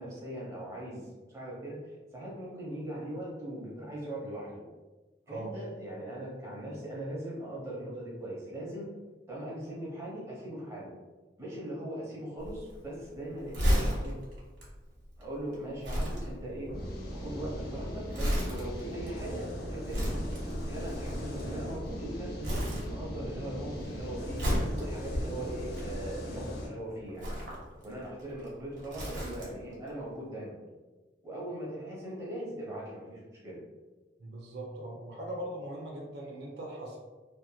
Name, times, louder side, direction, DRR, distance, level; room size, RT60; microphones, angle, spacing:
voice 1, 0.0-4.6 5.3-8.9 9.3-10.9 11.4-14.2 15.2-16.7 17.1-20.1 20.6-27.3 27.8-30.6 31.2-33.6, right 1 dB, 15° right, -5 dB, 0.7 m, -40 dB
Crumpling crinkling, 12.4-22.0 22.4-23.4 23.6-26.4 27.1-29.7 30.0-30.2, equal, 85° right, 1.0 m, -34 dB
sound 1, 16.5-24.3, equal, 15° left, 0.7 m, -47 dB
sound 2, 16.7-26.7, equal, 60° left, 0.6 m, -40 dB
voice 2, 34.2-37.0, right 1 dB, 65° right, -1 dB, 0.5 m, -40 dB
2.8 x 2.5 x 2.2 m, 1.3 s
head